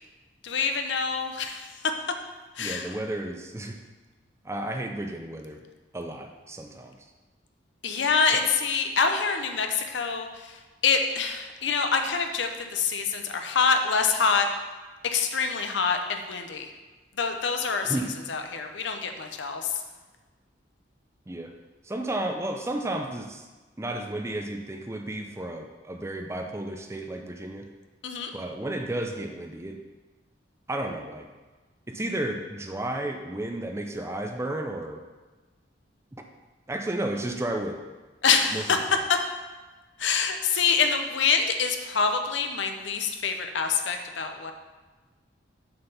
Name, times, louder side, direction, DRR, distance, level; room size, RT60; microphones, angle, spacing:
voice 1, 0.4-1.7 2.6-2.9 7.8-14.5 15.0-16.7 17.2-17.9 18.3-19.8 28.0-28.3 38.2-38.8 40.0-44.5, left 5 dB, 70° left, 5 dB, 0.7 m, -26 dB
voice 2, 2.6-3.8 4.4-5.6 5.9-7.0 8.3-8.4 17.8-18.1 21.3-21.5 21.8-23.4 23.8-27.7 28.3-29.8 30.7-31.3 31.9-35.0 36.1-36.2 36.7-37.8 38.5-38.6, right 1 dB, 15° right, 4 dB, 0.5 m, -32 dB
6.5 x 4.5 x 5.5 m, 1.2 s
head